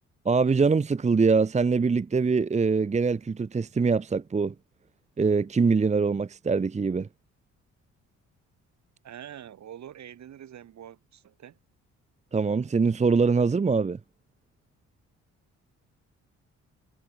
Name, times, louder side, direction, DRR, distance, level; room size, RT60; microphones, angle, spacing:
voice 1, 0.2-4.5 5.2-7.1 12.3-14.0, right 4 dB, 25° right, 0.9 m, -23 dB
voice 2, 9.0-11.6, right 10 dB, 65° right, 5.5 m, -45 dB
cardioid pair, 90°, 30 cm